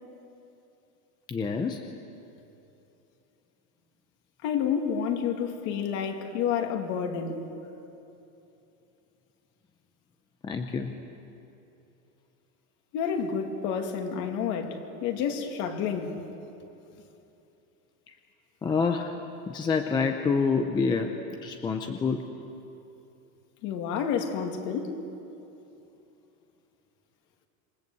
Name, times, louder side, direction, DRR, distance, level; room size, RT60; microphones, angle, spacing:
voice 1, 1.3-1.8 10.4-10.9 18.1-18.2 18.6-19.2 19.5-21.2 21.4-22.3, left 5 dB, 10° left, 5 dB, 0.7 m, -27 dB
voice 2, 4.4-7.5 12.9-16.2 23.6-25.0, left 7 dB, 45° left, 4 dB, 2.7 m, -29 dB
27.0 x 22.0 x 8.1 m, 2.9 s
supercardioid pair, 160°, 43 cm